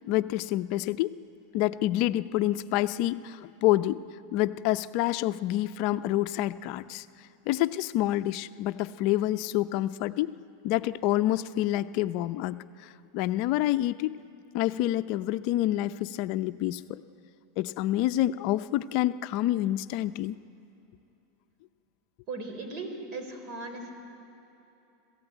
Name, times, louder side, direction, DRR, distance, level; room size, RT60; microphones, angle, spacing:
voice 1, 0.1-1.1 1.5-4.0 4.3-7.1 7.5-10.3 10.6-14.2 14.5-17.0 17.6-20.4, left 14 dB, 55° left, 11 dB, 0.5 m, -28 dB
voice 2, 22.3-23.9, right 3 dB, 45° right, 5 dB, 4.5 m, -37 dB
26.0 x 15.5 x 9.0 m, 2.9 s
supercardioid pair, 120°, 0 cm